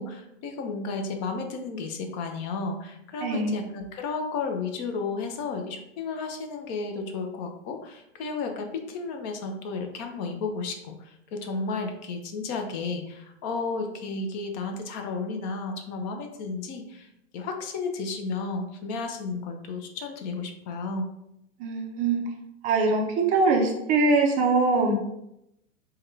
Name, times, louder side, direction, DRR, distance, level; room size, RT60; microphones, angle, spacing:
voice 1, 0.0-17.1 17.3-21.1, left 4 dB, 40° left, 4 dB, 0.5 m, -33 dB
voice 2, 3.2-3.5 21.6-22.2 22.6-24.9, right 3 dB, 20° right, 1 dB, 0.4 m, -22 dB
3.6 x 2.2 x 3.2 m, 0.81 s
hypercardioid pair, 130°, 38 cm